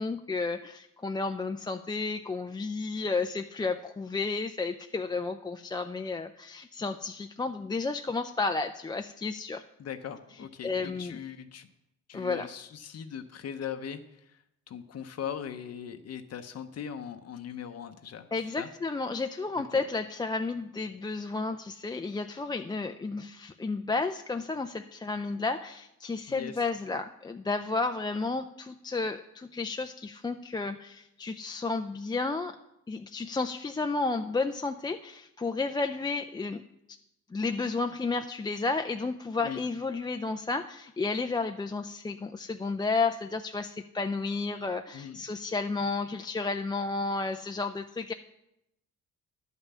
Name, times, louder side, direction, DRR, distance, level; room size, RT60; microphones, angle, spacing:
voice 1, 0.0-9.6 10.6-11.2 12.1-12.5 18.3-32.6 32.9-36.6 37.3-48.1, left 3 dB, 15° left, 6 dB, 0.4 m, -32 dB
voice 2, 9.8-11.7 12.1-18.3 18.6-18.7 19.7-19.8 26.3-26.6 39.4-39.6 44.9-45.2, left 8 dB, 55° left, 7 dB, 0.8 m, -40 dB
11.0 x 5.5 x 7.2 m, 0.85 s
cardioid pair, 90°, 30 cm